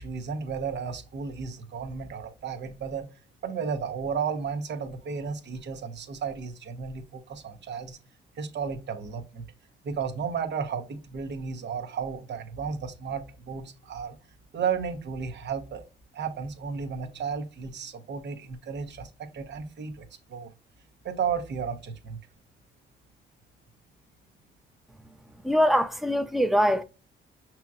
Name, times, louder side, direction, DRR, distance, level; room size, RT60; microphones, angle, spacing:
voice 1, 0.0-3.1 3.4-8.0 8.4-9.5 9.8-14.2 14.5-15.9 16.1-20.5 21.0-22.2, right 6 dB, 60° right, 1.0 m, -33 dB
voice 2, 25.4-26.8, equal, ahead, 0.6 m, -23 dB
5.8 x 2.9 x 2.4 m
cardioid pair, 90°, 20 cm